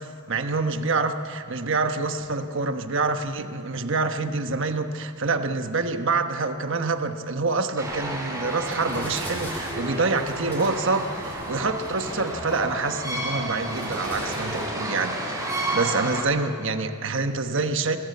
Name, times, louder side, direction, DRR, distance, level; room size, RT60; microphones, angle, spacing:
voice 1, 0.0-18.0, right 3 dB, 60° right, 7 dB, 1.1 m, -26 dB
sound 1, 7.8-14.7, equal, 5° left, 6.7 m, -39 dB
sound 2, 7.8-16.2, right 1 dB, 15° right, 3.5 m, -31 dB
21.5 x 17.5 x 8.4 m, 2.6 s
head